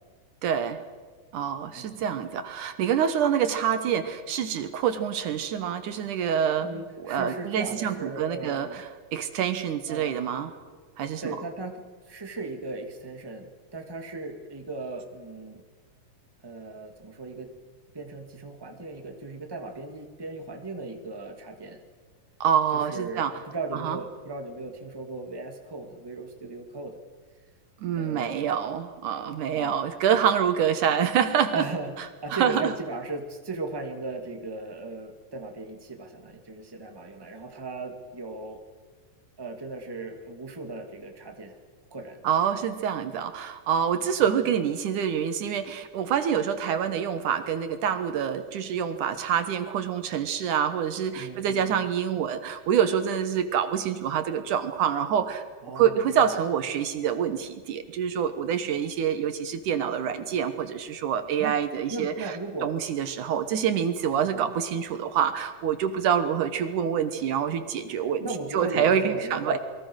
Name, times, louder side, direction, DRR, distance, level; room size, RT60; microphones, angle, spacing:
voice 1, 0.4-0.8 1.3-8.7 9.1-10.5 11.0-11.4 22.4-23.3 23.8-24.0 27.8-31.7 32.0-32.1 32.3-32.7 42.2-55.4 55.7-68.3 68.5-69.6, right 8 dB, 70° right, 10 dB, 2.5 m, -26 dB
voice 2, 1.7-2.1 6.6-8.8 9.9-10.2 11.2-15.6 16.4-17.5 17.9-21.8 22.7-27.0 27.9-28.3 29.5-29.8 31.5-31.9 32.2-38.6 39.4-41.6 41.9-42.2 44.2-44.3 51.1-51.8 55.6-56.1 61.4-61.5 61.9-62.7 64.1-64.6 68.2-69.6, right 2 dB, 10° right, 4 dB, 1.9 m, -37 dB
29.0 x 22.5 x 6.4 m, 1.5 s
omnidirectional pair, 3.9 m